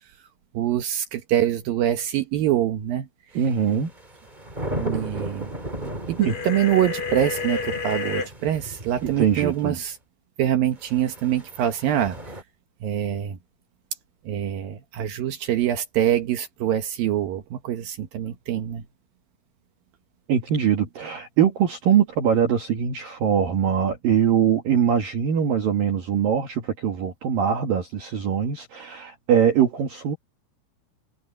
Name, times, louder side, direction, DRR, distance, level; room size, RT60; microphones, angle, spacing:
voice 1, 0.5-3.1 4.7-5.5 6.1-10.0 10.4-12.2 12.8-13.4 14.3-18.8, right 11 dB, 70° right, 2.2 m, -24 dB
voice 2, 3.3-3.9 6.2-6.3 9.0-9.8 20.3-30.2, right 8 dB, 55° right, 3.0 m, -22 dB
sound 1, 3.5-9.8 10.8-12.4, right 1 dB, 10° right, 2.8 m, -36 dB
sound 2, 6.2-8.3, left 5 dB, 30° left, 4.3 m, -29 dB
omnidirectional pair, 5.7 m